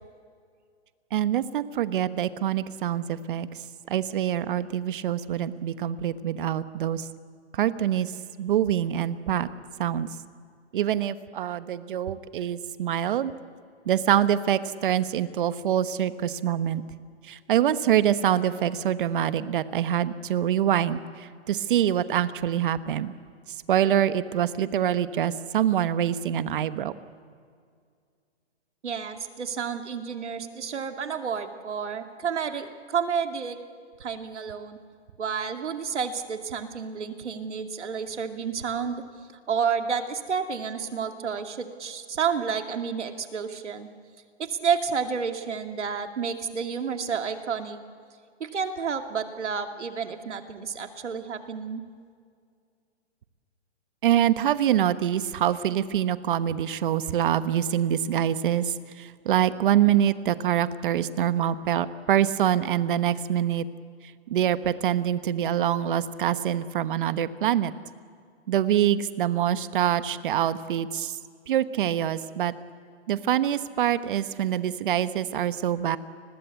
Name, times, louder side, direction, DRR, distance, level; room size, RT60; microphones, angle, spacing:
voice 1, 1.1-3.5 3.9-7.1 7.5-8.1 8.4-9.5 9.8-10.1 10.7-13.3 13.9-16.8 17.3-23.1 23.7-26.9 54.0-63.7 64.3-67.7 68.5-71.2 71.5-72.5 73.1-76.0, right 10 dB, 50° right, 13 dB, 1.2 m, -25 dB
voice 2, 28.8-33.6 34.0-34.8 35.2-39.0 39.5-43.9 44.4-47.8 48.4-51.8, right 6 dB, 90° right, 5 dB, 2.5 m, -30 dB
30.0 x 21.0 x 8.2 m, 2.2 s
hypercardioid pair, 155°, 34 cm